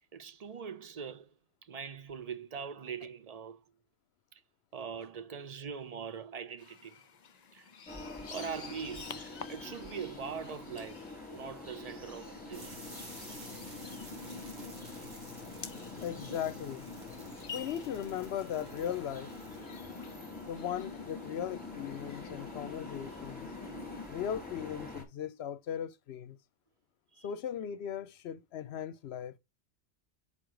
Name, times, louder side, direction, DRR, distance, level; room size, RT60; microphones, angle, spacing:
voice 1, 0.1-1.3 1.6-3.6 4.3-4.4 4.7-7.0 7.5-7.7 8.3-12.8 18.8-19.0 27.1-27.3, right 6 dB, 45° right, 0.5 m, -42 dB
sound 1, 6.6-24.1, left 4 dB, 45° left, 0.6 m, -48 dB
sound 2, 7.9-25.0, left 2 dB, 5° left, 2.6 m, -46 dB
sound 3, 12.5-20.4, right 1 dB, 65° right, 2.6 m, -52 dB
voice 2, 16.0-16.9 17.5-19.3 20.5-23.5 24.1-26.4 27.2-29.4, left 9 dB, 70° left, 0.8 m, -38 dB
5.7 x 4.7 x 5.0 m
omnidirectional pair, 1.2 m